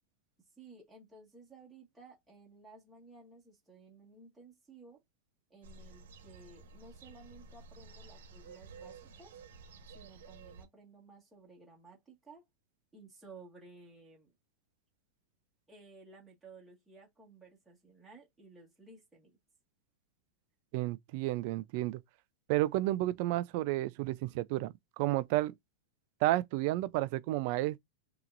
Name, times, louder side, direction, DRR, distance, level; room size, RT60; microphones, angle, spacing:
voice 1, 0.6-5.0 5.5-9.4 9.9-12.4 12.9-14.3 15.7-19.4, right 3 dB, 5° right, 1.8 m, -56 dB
sound 1, 5.6-10.7, right 4 dB, 90° right, 1.2 m, -52 dB
voice 2, 20.7-22.0 22.5-25.5 26.2-27.8, right 17 dB, 40° right, 0.4 m, -31 dB
5.8 x 2.9 x 2.6 m
supercardioid pair, 175°, 0 cm